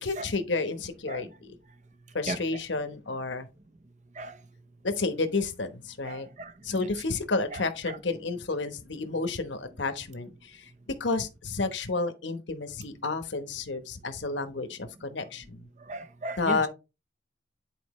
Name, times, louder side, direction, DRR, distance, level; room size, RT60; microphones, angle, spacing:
voice 1, 0.0-1.5 2.1-3.5 4.8-6.3 6.6-10.7 11.0-15.7 16.4-16.7, left 3 dB, 85° left, 1.1 m, -31 dB
voice 2, 6.1-6.8 7.5-7.6 15.8-16.6, right 2 dB, 40° right, 0.8 m, -36 dB
10.0 x 4.5 x 3.1 m
head